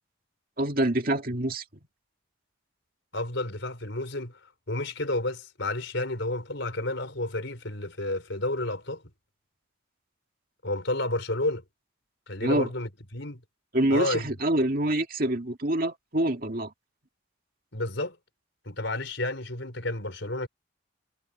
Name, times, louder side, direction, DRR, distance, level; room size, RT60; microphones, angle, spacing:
voice 1, 0.6-1.6 12.4-12.7 13.7-16.7, right 1 dB, 45° right, 2.4 m, -26 dB
voice 2, 3.1-4.3 4.7-9.0 10.6-11.6 12.3-13.4 13.9-14.3 17.7-18.2 18.7-20.5, left 2 dB, 65° left, 4.4 m, -31 dB
head